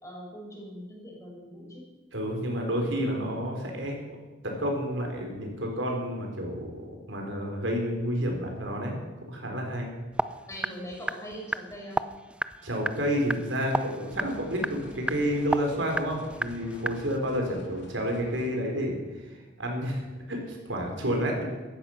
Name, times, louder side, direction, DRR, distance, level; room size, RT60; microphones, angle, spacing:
voice 1, 0.0-1.9 10.5-12.0 17.4-17.7, equal, 15° left, -2 dB, 6.0 m, -42 dB
voice 2, 2.1-4.0 4.4-9.0 9.3-9.9 12.6-20.0 20.3-21.4, equal, 70° right, 2 dB, 4.3 m, -30 dB
sound 1, 10.1-17.2, right 1 dB, 5° right, 0.5 m, -34 dB
sound 2, 14.1-18.5, equal, 65° left, 2.8 m, -49 dB
17.5 x 14.0 x 5.9 m, 1.2 s
head